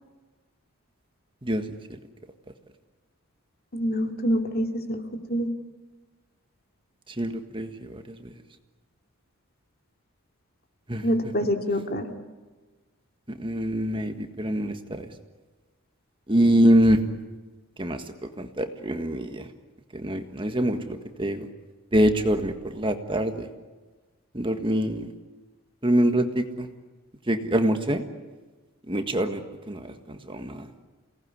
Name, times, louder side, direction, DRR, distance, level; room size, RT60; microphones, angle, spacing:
voice 1, 3.7-5.0 5.3-5.5 11.0-12.1, equal, 45° left, 4 dB, 2.6 m, -26 dB
voice 2, 7.2-8.3 10.9-11.0 13.4-15.1 16.3-17.0 17.8-18.0 18.4-19.5 19.9-21.5 21.9-23.5 24.3-25.1 25.8-26.7 27.3-28.0 28.9-29.4 29.7-30.7, right 1 dB, 25° right, 6 dB, 1.6 m, -24 dB
29.5 x 18.5 x 9.8 m, 1.3 s
head